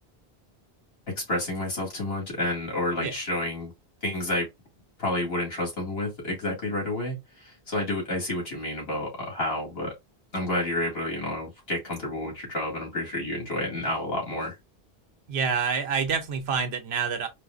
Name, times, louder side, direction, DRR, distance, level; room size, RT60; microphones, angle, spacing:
voice 1, 1.2-3.7 4.0-4.5 5.0-9.9 10.3-14.5, left 1 dB, 75° left, 2.3 m, -30 dB
voice 2, 15.3-17.3, right 6 dB, 85° right, 1.0 m, -27 dB
4.7 x 2.0 x 2.4 m
omnidirectional pair, 1.0 m